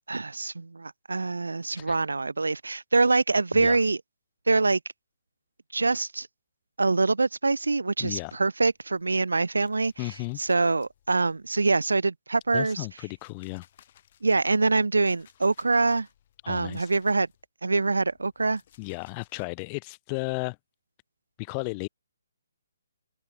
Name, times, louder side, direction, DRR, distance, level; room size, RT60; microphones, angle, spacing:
voice 1, 0.1-4.0 4.5-4.8 5.7-6.3 6.8-9.9 10.4-12.9 14.2-16.1 16.5-17.3 17.6-18.6, right 3 dB, 85° right, 0.3 m, -24 dB
voice 2, 8.0-8.4 10.0-10.4 12.5-13.6 16.4-16.9 18.8-20.6 21.4-21.9, left 34 dB, 25° left, 1.0 m, -34 dB
sound 1, 8.7-12.0 12.4-17.5 17.8-19.5, left 11 dB, 40° left, 4.8 m, -62 dB
hypercardioid pair, 145°, 0 cm